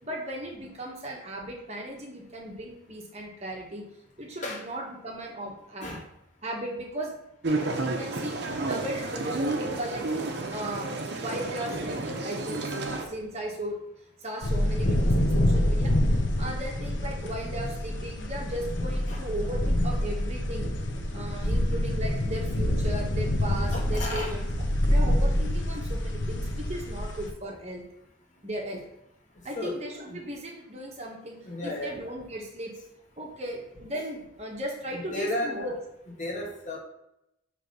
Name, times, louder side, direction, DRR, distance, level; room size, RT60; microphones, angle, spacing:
voice 1, 0.0-3.8 4.2-6.0 6.4-7.1 7.7-8.4 8.7-10.0 10.5-13.8 14.2-16.0 16.4-20.7 21.1-24.5 24.9-27.8 28.4-28.8 29.4-31.4 31.6-32.7 33.2-35.7, right 1 dB, 35° right, -1 dB, 1.1 m, -36 dB
sound 1, 7.4-13.1, right 2 dB, 55° right, 0.8 m, -31 dB
voice 2, 11.1-11.5 19.1-19.2 23.7-24.4 25.1-25.2 29.5-29.8 30.1-30.2 31.4-32.0 34.9-35.6 36.2-36.8, left 1 dB, 40° left, -2 dB, 1.4 m, -34 dB
sound 2, 14.4-27.3, left 1 dB, 65° left, 0.9 m, -26 dB
6.2 x 3.3 x 5.3 m, 0.82 s
head